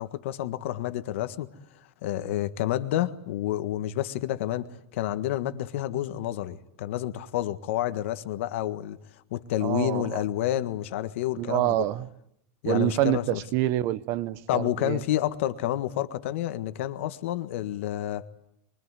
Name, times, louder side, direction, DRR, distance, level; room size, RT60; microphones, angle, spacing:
voice 1, 0.0-1.5 2.0-9.0 9.3-11.7 12.6-13.4 14.5-18.2, left 13 dB, 70° left, 1.6 m, -29 dB
voice 2, 9.6-10.2 11.4-12.1 12.7-15.0, right 14 dB, 40° right, 1.0 m, -27 dB
24.5 x 23.5 x 9.7 m
supercardioid pair, 165°, 7 cm